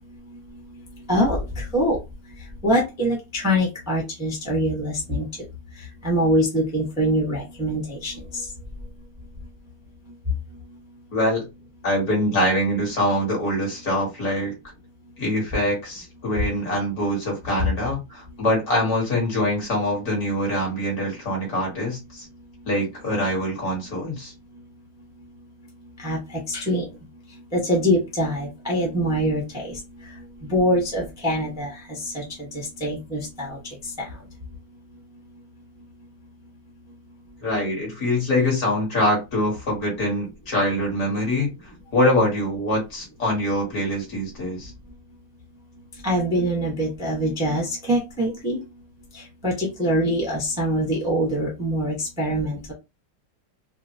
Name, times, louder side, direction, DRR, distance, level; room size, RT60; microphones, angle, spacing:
voice 1, 1.1-2.0 2.6-5.3 6.0-8.1 26.0-26.2 26.5-26.9 27.5-29.8 30.4-33.6 34.0-34.1 46.0-48.6 49.4-52.7, equal, 5° right, -3 dB, 0.7 m, -24 dB
voice 2, 11.1-11.4 11.8-14.5 15.2-22.3 22.7-24.3 37.4-41.5 41.9-44.7, left 1 dB, 50° left, -2 dB, 1.7 m, -24 dB
3.8 x 2.1 x 2.7 m, 0.24 s
omnidirectional pair, 2.3 m